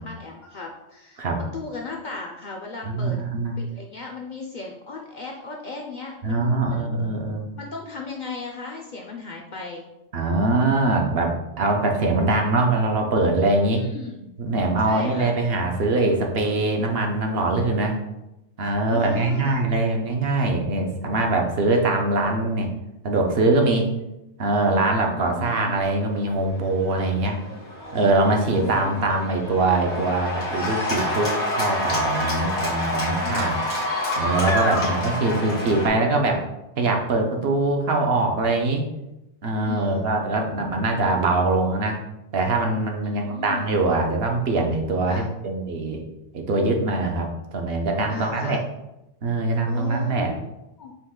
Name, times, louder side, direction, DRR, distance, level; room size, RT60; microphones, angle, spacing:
voice 1, 0.0-1.2 1.5-3.2 3.6-6.8 7.5-9.9 13.7-14.3 14.8-15.4 18.9-19.6 25.2-25.9 28.2-29.2 33.2-33.7 34.8-35.0 39.6-40.1 43.0-43.7 45.1-45.3 48.1-48.6 49.7-50.9, left 4 dB, 55° left, 1 dB, 0.5 m, -36 dB
voice 2, 2.8-3.5 6.2-7.5 10.1-13.8 14.4-18.0 18.6-22.7 23.0-23.9 24.4-27.4 27.9-33.6 34.2-36.4 36.8-38.8 39.4-42.0 42.3-46.0 46.3-48.6 49.2-50.3, right 2 dB, 60° right, 2 dB, 0.9 m, -23 dB
Cheering / Applause, 26.2-35.9, left 1 dB, 85° left, 1.7 m, -28 dB
5.5 x 2.4 x 3.6 m, 0.92 s
omnidirectional pair, 1.2 m